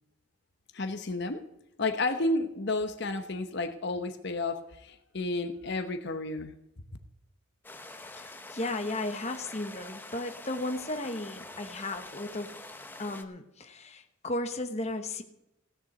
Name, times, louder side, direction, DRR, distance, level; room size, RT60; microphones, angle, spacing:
voice 1, 0.7-1.4 1.8-6.5, left 2 dB, 55° left, 7 dB, 0.9 m, -31 dB
sound 1, 7.6-13.2, left 2 dB, 10° left, 0.9 m, -45 dB
voice 2, 8.1-12.5 13.0-15.2, left 2 dB, 30° left, 6 dB, 1.1 m, -35 dB
16.5 x 7.1 x 7.8 m, 0.84 s
head